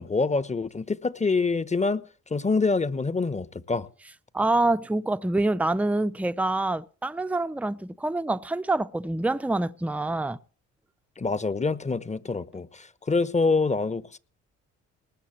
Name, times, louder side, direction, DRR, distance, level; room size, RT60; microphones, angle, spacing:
voice 1, 0.0-2.0 2.3-3.9 11.2-14.2, left 4 dB, 20° left, 1.2 m, -26 dB
voice 2, 4.3-10.4, right 2 dB, 5° right, 0.7 m, -26 dB
19.5 x 6.6 x 7.6 m
supercardioid pair, 55°, 32 cm